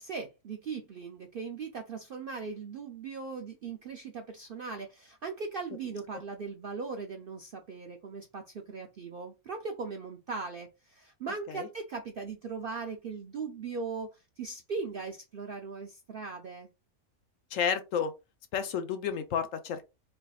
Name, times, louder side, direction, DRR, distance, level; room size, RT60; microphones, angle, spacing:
voice 1, 0.0-16.7, right 4 dB, 65° right, 0.5 m, -39 dB
voice 2, 17.5-18.1 18.5-19.8, left 7 dB, 70° left, 1.0 m, -31 dB
4.4 x 3.3 x 2.3 m
omnidirectional pair, 1.5 m